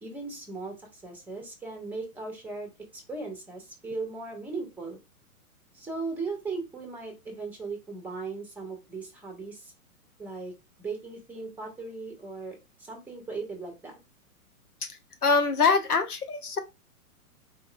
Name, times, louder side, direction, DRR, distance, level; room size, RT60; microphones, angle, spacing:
voice 1, 0.0-5.0 5.7-9.7 10.2-10.5 10.8-14.0, right 3 dB, 5° right, 1.0 m, -38 dB
voice 2, 15.2-16.6, left 4 dB, 85° left, 0.9 m, -23 dB
4.2 x 2.8 x 2.4 m
figure-of-eight pair, 115°, 44 cm